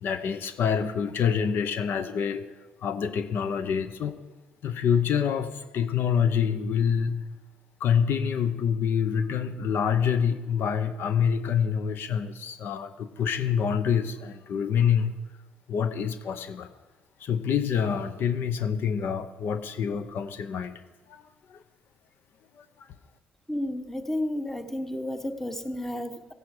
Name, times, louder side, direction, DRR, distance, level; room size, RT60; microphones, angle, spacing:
voice 1, 0.0-2.5 2.8-4.2 4.6-7.3 7.8-15.1 15.7-16.7 17.2-20.8 21.1-21.2 21.5-21.6 22.6-22.9, left 7 dB, 65° left, 11 dB, 0.8 m, -26 dB
voice 2, 23.5-26.3, left 1 dB, 10° left, 9 dB, 1.1 m, -32 dB
15.0 x 10.5 x 5.0 m, 1.2 s
supercardioid pair, 75°, 4 cm